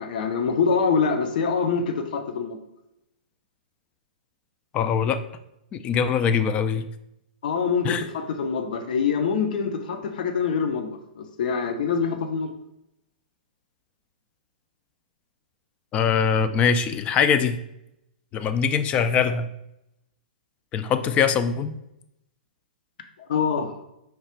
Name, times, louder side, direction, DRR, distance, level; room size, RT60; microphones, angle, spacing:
voice 1, 0.0-2.6 7.4-12.5 23.3-23.7, left 5 dB, 65° left, 6 dB, 0.6 m, -25 dB
voice 2, 4.7-5.2 5.7-6.8 7.8-8.0 15.9-17.6 18.3-19.5 20.7-21.7, left 7 dB, 25° left, 10 dB, 0.3 m, -22 dB
4.6 x 2.4 x 4.3 m, 0.84 s
hypercardioid pair, 125°, 5 cm